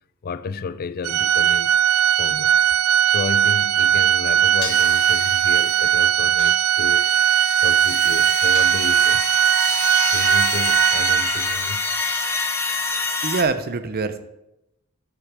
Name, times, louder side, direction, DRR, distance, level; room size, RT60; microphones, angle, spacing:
voice 1, 0.2-1.7 2.1-2.6 3.0-7.1 7.6-9.2 10.1-11.9, left 5 dB, 45° left, 0.4 m, -32 dB
Organ, 1.0-11.7, right 10 dB, 65° right, 0.3 m, -19 dB
Short hits with metal stick on a steel wheel, 4.6-5.0 6.4-7.1 8.5-9.3, left 6 dB, 85° left, 1.6 m, -35 dB
sound 1, 4.6-6.1 6.6-13.4, left 4 dB, 10° left, 0.9 m, -27 dB
voice 2, 13.2-14.2, right 4 dB, 45° right, 0.7 m, -24 dB
11.0 x 8.2 x 3.6 m
head